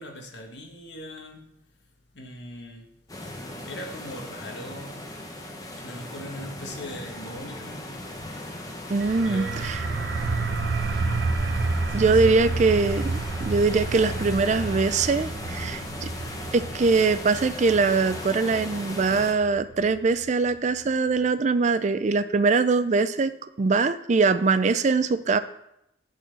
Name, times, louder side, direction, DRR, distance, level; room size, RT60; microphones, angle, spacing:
voice 1, 0.0-1.5 2.1-2.9 3.6-5.1 5.8-7.9 9.2-10.0 11.9-12.5, equal, 70° left, 1 dB, 1.5 m, -40 dB
sound 1, 3.1-19.3, left 1 dB, 20° left, 1.0 m, -38 dB
voice 2, 8.9-9.8 11.9-16.1 16.5-23.3 23.6-25.4, right 4 dB, 40° right, 12 dB, 0.4 m, -22 dB
sound 2, 9.0-20.5, right 3 dB, 75° right, 0.8 m, -30 dB
8.4 x 4.2 x 7.0 m, 0.79 s
head